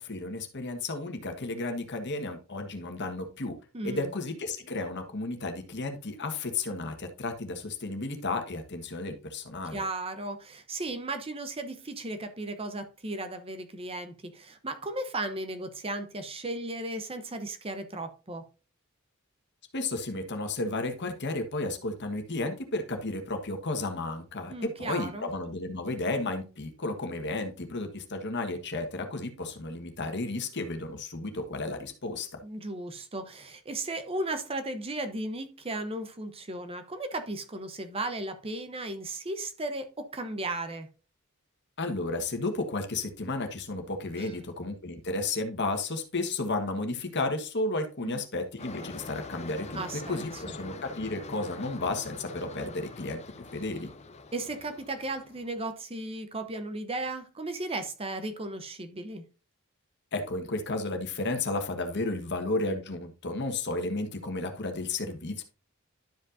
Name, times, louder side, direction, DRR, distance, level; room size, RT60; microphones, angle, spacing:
voice 1, 0.0-3.6 3.8-9.8 19.7-32.3 41.8-53.2 53.5-53.9 60.1-65.4, left 2 dB, 50° left, 1.4 m, -33 dB
voice 2, 3.7-4.1 9.7-18.4 24.5-25.3 32.4-40.9 44.2-44.3 48.0-48.2 49.7-50.5 54.3-59.2, right 2 dB, 25° right, 0.8 m, -35 dB
sound 1, 48.6-55.6, left 3 dB, 30° left, 0.6 m, -44 dB
12.0 x 5.2 x 2.6 m
head